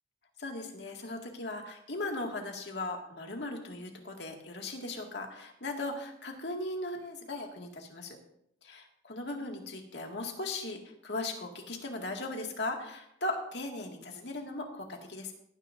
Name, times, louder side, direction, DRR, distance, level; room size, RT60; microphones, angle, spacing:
voice 1, 0.4-8.2 8.6-15.3, left 2 dB, 70° left, 2 dB, 2.0 m, -38 dB
19.0 x 10.0 x 2.6 m, 0.72 s
head